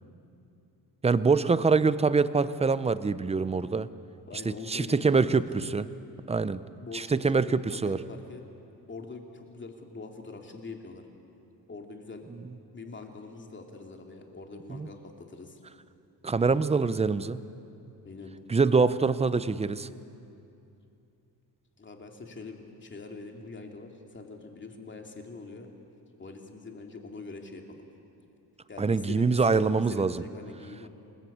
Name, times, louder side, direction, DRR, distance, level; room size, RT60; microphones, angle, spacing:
voice 1, 1.0-3.9 4.4-5.9 6.3-6.6 6.9-8.0 14.7-14.9 16.2-17.4 18.5-19.9 28.8-30.2, right 4 dB, 15° right, 15 dB, 0.6 m, -25 dB
voice 2, 4.3-5.6 6.7-8.4 8.9-11.1 11.7-12.3 12.7-15.6 18.0-18.4 21.8-25.7 26.2-27.9 28.7-30.9, left 3 dB, 30° left, 3 dB, 2.7 m, -43 dB
28.0 x 20.5 x 8.6 m, 2.7 s
wide cardioid pair, 145°, 38 cm